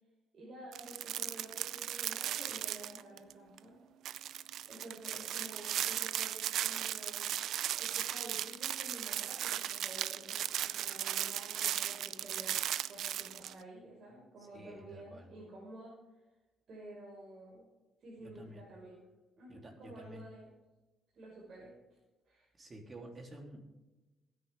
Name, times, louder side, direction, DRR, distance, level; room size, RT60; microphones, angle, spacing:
voice 1, 0.3-3.8 4.7-7.2 7.8-12.5 12.9-15.9 16.7-17.6 18.0-19.0 19.4-20.5 21.2-21.7 22.2-22.5, right 1 dB, 55° right, -5 dB, 5.8 m, -51 dB
sound 1, 0.7-3.3 3.6-3.7 4.0-13.5, right 11 dB, 80° right, 0.5 m, -37 dB
voice 2, 14.5-15.3 18.2-18.7 19.5-20.2 22.6-23.6, right 1 dB, 35° right, 1 dB, 3.6 m, -50 dB
21.0 x 9.6 x 3.7 m, 1.1 s
cardioid pair, 90°, 0 cm